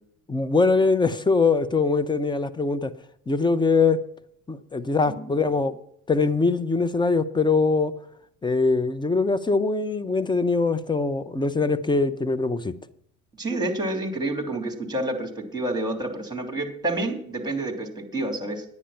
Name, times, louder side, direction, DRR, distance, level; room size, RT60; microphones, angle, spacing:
voice 1, 0.3-2.9 3.3-4.0 4.5-5.7 6.1-7.9 8.4-12.7, left 4 dB, 10° left, 12 dB, 0.8 m, -22 dB
voice 2, 5.1-5.4 13.4-18.6, right 2 dB, 10° right, 4 dB, 3.0 m, -29 dB
10.0 x 9.6 x 5.7 m, 0.69 s
hypercardioid pair, 70°, 44 cm